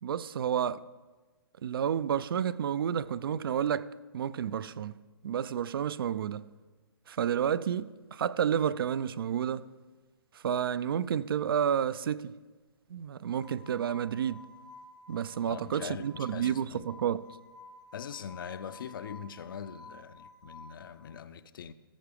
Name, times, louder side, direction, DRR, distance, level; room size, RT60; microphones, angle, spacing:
voice 1, 0.0-0.9 1.6-4.9 5.2-6.4 7.1-9.6 10.3-12.3 12.9-14.4 15.1-17.3, right 8 dB, 65° right, 0.4 m, -30 dB
sound 1, 13.3-21.1, left 2 dB, 5° left, 0.6 m, -53 dB
voice 2, 15.5-16.9 17.9-21.7, left 8 dB, 55° left, 0.5 m, -42 dB
14.0 x 4.7 x 5.1 m
hypercardioid pair, 155°, 13 cm